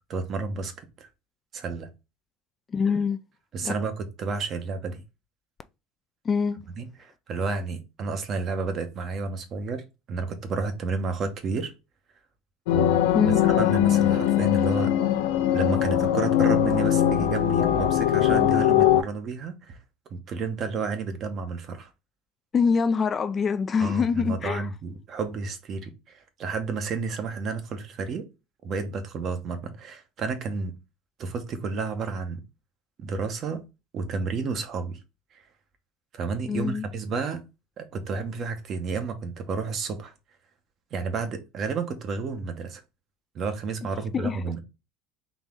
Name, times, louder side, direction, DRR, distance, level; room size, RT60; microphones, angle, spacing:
voice 1, 0.1-1.1 1.5-1.9 3.5-5.0 6.8-9.8 10.1-11.7 12.7-13.0 13.6-14.9 15.5-19.8 20.1-21.9 23.8-28.2 28.6-30.7 31.2-32.4 33.0-33.6 33.9-35.0 36.1-37.4 37.8-40.1 40.9-42.8 43.3-44.6, right 4 dB, 45° right, 1.0 m, -31 dB
voice 2, 2.7-3.2 3.6-3.7 6.2-6.6 13.1-13.4 22.5-24.7 36.5-36.8 44.1-44.4, left 5 dB, 30° left, 0.3 m, -24 dB
sound 1, 12.7-19.0, left 11 dB, 90° left, 0.6 m, -21 dB
4.0 x 3.0 x 3.6 m
supercardioid pair, 115°, 0 cm